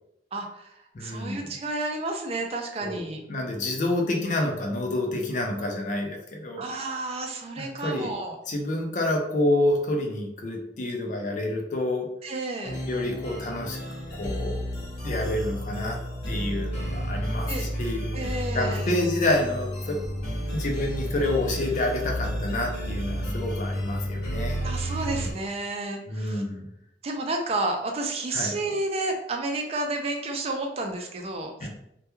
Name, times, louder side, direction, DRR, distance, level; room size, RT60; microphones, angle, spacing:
voice 1, 0.3-0.7 1.0-3.2 6.6-8.3 12.2-12.8 17.5-17.7 18.1-19.0 24.6-26.4 27.0-31.7, right 2 dB, 35° right, 3 dB, 0.4 m, -31 dB
voice 2, 0.9-1.5 2.8-6.6 7.6-8.1 8.5-12.1 12.9-13.8 14.2-16.0 16.3-18.0 18.5-20.0 20.5-24.6 26.1-26.7 28.3-28.5 31.6-31.7, left 1 dB, 45° left, 1 dB, 0.4 m, -28 dB
sound 1, 12.6-25.3, equal, 60° left, 1.0 m, -31 dB
2.2 x 2.2 x 2.9 m, 0.79 s
head